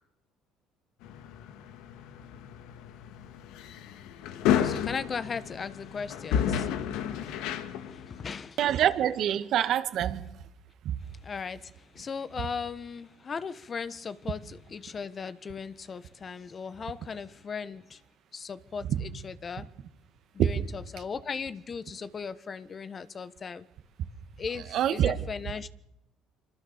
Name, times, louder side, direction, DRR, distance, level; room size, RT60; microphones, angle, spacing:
sound 1, 1.0-8.4, left 9 dB, 75° left, 2.0 m, -32 dB
voice 1, 4.5-8.6 11.2-18.0 18.3-19.7 20.3-23.6 24.4-25.7, left 5 dB, 35° left, 1.4 m, -38 dB
voice 2, 8.6-10.2 20.4-20.5 24.7-25.2, right 10 dB, 60° right, 2.1 m, -25 dB
25.5 x 25.0 x 7.0 m
supercardioid pair, 80°, 0 cm